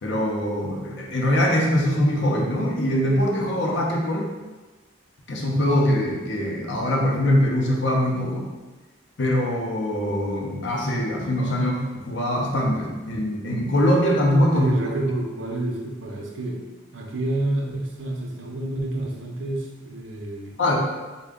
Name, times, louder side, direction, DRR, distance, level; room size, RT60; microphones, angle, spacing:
voice 1, 0.0-4.3 5.3-8.5 9.2-14.7 20.6-20.8, equal, 55° left, -1 dB, 0.6 m, -22 dB
voice 2, 14.5-16.6 16.9-20.6, right 1 dB, 60° right, -1 dB, 0.6 m, -28 dB
3.3 x 2.2 x 3.6 m, 1.2 s
head